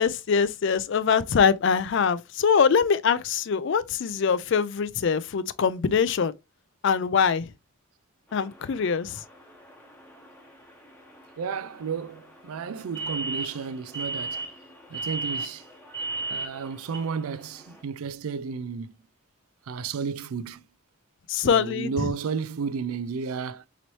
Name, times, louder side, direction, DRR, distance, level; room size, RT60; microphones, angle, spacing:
voice 1, 0.0-6.3 6.8-7.5 8.3-9.2 21.3-22.1, left 6 dB, 55° left, 0.4 m, -23 dB
sound 1, 8.3-17.8, right 3 dB, 10° left, 0.7 m, -37 dB
voice 2, 11.4-14.5 14.9-15.6 16.3-18.9 19.7-20.6 21.4-23.6, right 5 dB, 75° right, 0.4 m, -32 dB
4.0 x 3.0 x 3.0 m
head